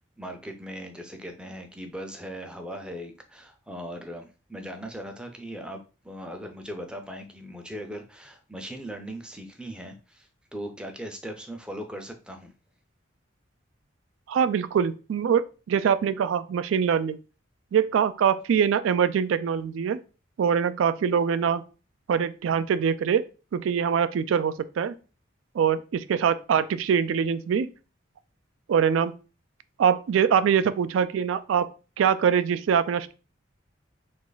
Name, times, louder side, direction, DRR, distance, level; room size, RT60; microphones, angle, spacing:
voice 1, 0.2-12.5, equal, 5° right, 0.4 m, -39 dB
voice 2, 14.3-17.2 17.7-20.0 20.4-21.6 22.1-23.2 23.5-24.9 25.5-27.7 28.7-29.1 29.8-31.7 32.0-33.1, right 7 dB, 85° right, 0.3 m, -23 dB
2.9 x 2.4 x 3.9 m
head